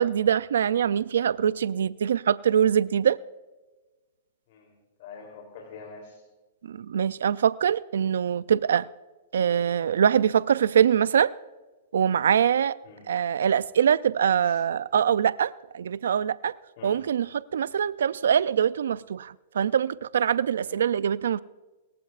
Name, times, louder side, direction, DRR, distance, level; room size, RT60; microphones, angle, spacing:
voice 1, 0.0-3.2 6.8-8.9 9.3-11.3 11.9-12.8 13.1-16.5 16.8-17.3 17.5-21.4, right 8 dB, 80° right, 18 dB, 0.4 m, -23 dB
voice 2, 4.5-6.2 12.8-13.1 14.4-14.6 16.8-17.0 20.6-20.8, left 4 dB, 55° left, 2 dB, 3.3 m, -46 dB
23.5 x 14.5 x 2.5 m, 1.2 s
hypercardioid pair, 135°, 0 cm